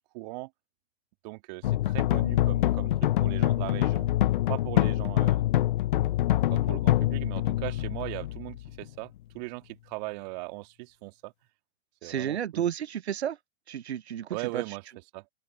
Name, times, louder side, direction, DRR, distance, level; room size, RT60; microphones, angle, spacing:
voice 1, 0.1-0.5 1.2-4.1 4.5-5.5 6.5-11.3 12.0-12.6 14.3-15.2, right 25 dB, 40° right, 1.9 m, -39 dB
sound 1, 1.6-8.9, left 14 dB, 50° left, 0.4 m, -25 dB
voice 2, 12.0-13.4 13.7-14.6, right 9 dB, 75° right, 0.7 m, -31 dB
open air
figure-of-eight pair, 115°, 33 cm